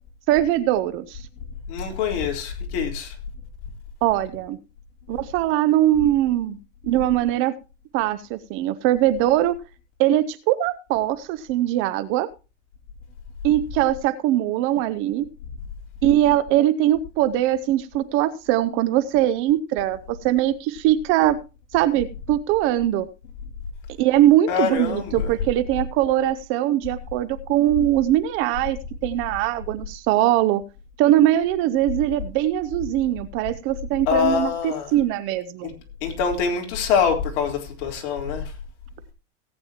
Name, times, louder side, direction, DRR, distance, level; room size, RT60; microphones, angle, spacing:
voice 1, 0.3-1.3 4.0-4.6 5.1-6.6 6.8-7.5 7.9-9.6 10.0-12.3 13.4-15.3 16.0-21.4 21.7-23.1 24.0-30.6 31.0-35.7, right 13 dB, 35° right, 0.6 m, -21 dB
voice 2, 1.7-3.1 24.5-25.3 34.1-34.9 35.6-35.7 36.0-38.4, left 6 dB, 50° left, 3.7 m, -24 dB
18.0 x 8.8 x 2.9 m
supercardioid pair, 145°, 37 cm